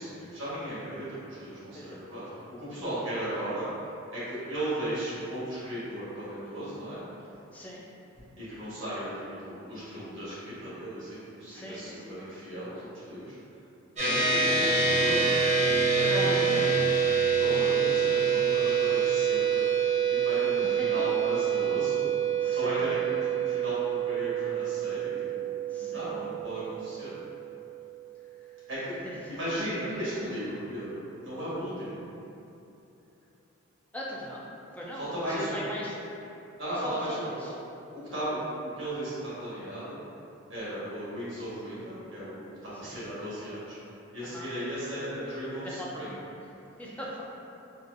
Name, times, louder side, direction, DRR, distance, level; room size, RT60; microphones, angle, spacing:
voice 1, 0.0-2.2 2.5-3.7 4.1-7.0 8.4-13.4 14.0-15.3 15.9-16.7 17.4-19.7 20.1-22.1 22.5-25.4 25.8-27.1 28.7-28.9 29.3-32.0 34.9-35.7 36.6-37.3 37.9-38.4 38.8-40.0 40.5-42.4 42.6-43.7 44.1-46.2, right 1 dB, 65° right, -10 dB, 1.4 m, -36 dB
voice 2, 7.5-7.8 11.5-12.2 20.8-20.9 22.4-22.9 25.7-26.3 29.0-29.4 29.9-30.0 33.9-34.4 34.7-36.0 36.8-37.5 38.1-38.2 42.8-43.0 44.2-44.5 45.6-45.9 46.8-47.2, equal, 5° left, -5 dB, 0.3 m, -40 dB
sound 1, 14.0-27.6, right 6 dB, 35° right, 1.0 m, -26 dB
3.9 x 2.5 x 2.5 m, 2.8 s
head